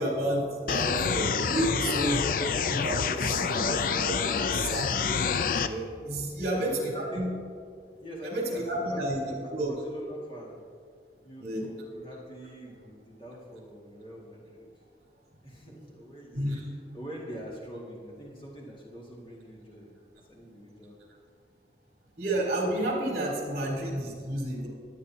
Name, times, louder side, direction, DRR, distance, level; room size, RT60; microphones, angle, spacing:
voice 1, 0.0-2.2 2.7-4.9 5.6-7.3 8.2-9.2 9.5-9.7 11.4-11.7 16.3-16.7 22.2-24.7, right 1 dB, 55° right, -2 dB, 3.3 m, -31 dB
sound 1, 0.7-5.7, left 5 dB, 50° left, 0.4 m, -27 dB
voice 2, 6.2-7.3 8.0-10.6 11.2-14.7 15.4-16.6 16.9-19.9 20.3-21.0, equal, 30° left, -5 dB, 2.1 m, -44 dB
20.5 x 9.5 x 2.8 m, 2.2 s
head